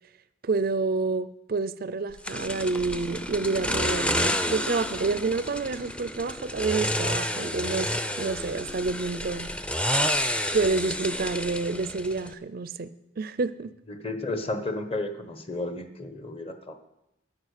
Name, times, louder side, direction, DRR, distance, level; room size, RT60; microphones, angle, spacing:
voice 1, 0.4-7.9 8.2-9.5 10.5-13.7, right 3 dB, 50° right, 14 dB, 0.5 m, -28 dB
sound 1, 2.2-12.3, equal, 5° left, 0.6 m, -30 dB
voice 2, 13.9-16.7, left 2 dB, 30° left, 8 dB, 1.1 m, -33 dB
11.0 x 10.5 x 6.6 m, 0.87 s
head